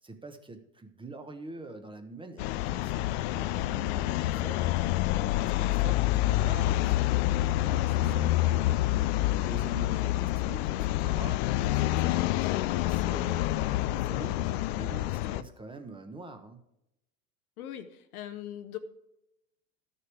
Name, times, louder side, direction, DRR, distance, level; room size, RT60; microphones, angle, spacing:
voice 1, 0.0-4.7 5.2-9.1 9.4-16.6, right 2 dB, 10° right, 6 dB, 1.1 m, -45 dB
sound 1, 2.4-15.4, left 15 dB, 45° left, 0.5 m, -27 dB
voice 2, 17.6-18.8, left 11 dB, 65° left, 9 dB, 1.2 m, -41 dB
12.5 x 6.8 x 4.6 m, 0.85 s
hypercardioid pair, 95°, 47 cm